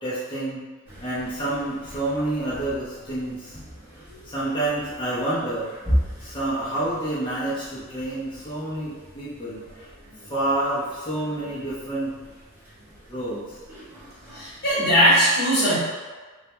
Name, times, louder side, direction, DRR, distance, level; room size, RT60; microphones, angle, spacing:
voice 1, 0.0-0.6 1.0-3.6 4.3-5.7 6.2-9.9 10.3-12.1 13.1-13.4, right 1 dB, 20° left, -11 dB, 0.6 m, -28 dB
sound 1, 0.9-15.1, equal, 10° right, 0.8 m, -37 dB
voice 2, 14.3-15.8, equal, 45° left, -9 dB, 1.0 m, -19 dB
2.2 x 2.1 x 2.9 m, 1.3 s
head